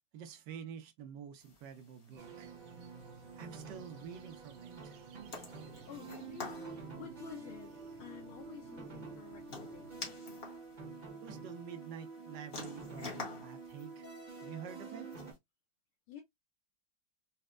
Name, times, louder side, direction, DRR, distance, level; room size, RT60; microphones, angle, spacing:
voice 1, 0.1-2.5 3.4-5.0 11.2-14.1 14.4-15.1, right 7 dB, 75° right, 1.1 m, -48 dB
sound 1, 1.4-15.4, left 4 dB, 40° left, 0.9 m, -51 dB
sound 2, 2.1-10.2, right 6 dB, 90° right, 0.8 m, -57 dB
sound 3, 2.2-15.3, right 4 dB, 35° right, 0.7 m, -49 dB
voice 2, 5.9-6.5 7.0-10.2 16.1-16.2, left 9 dB, 85° left, 1.6 m, -51 dB
4.1 x 2.1 x 2.3 m
omnidirectional pair, 2.2 m